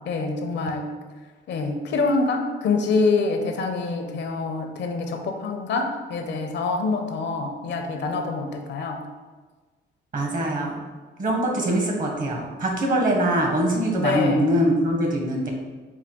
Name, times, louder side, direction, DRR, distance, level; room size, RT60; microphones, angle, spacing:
voice 1, 0.1-0.9 1.5-9.0 14.0-14.5, left 3 dB, 60° left, 4 dB, 0.6 m, -25 dB
voice 2, 10.1-10.8 11.2-15.5, right 1 dB, 45° right, 0 dB, 0.9 m, -23 dB
4.6 x 2.2 x 3.6 m, 1.3 s
cardioid pair, 90°, 20 cm